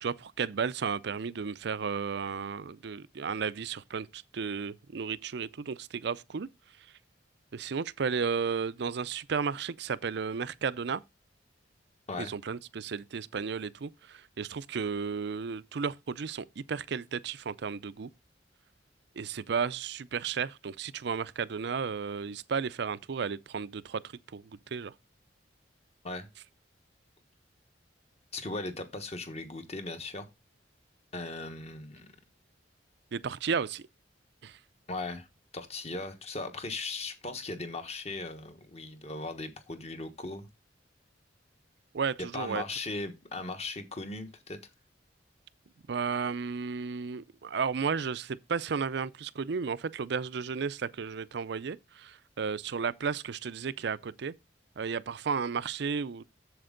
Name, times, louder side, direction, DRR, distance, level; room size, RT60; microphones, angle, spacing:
voice 1, 0.0-6.5 7.5-11.0 12.2-18.1 19.2-24.0 24.3-24.9 33.1-33.9 34.4-34.6 41.9-42.6 45.9-54.3 54.8-56.2, right 6 dB, 60° right, 0.5 m, -33 dB
voice 2, 28.3-30.3 31.1-32.1 34.9-35.3 35.5-40.5 42.3-44.6, left 3 dB, 35° left, 1.3 m, -38 dB
7.8 x 7.3 x 3.8 m
head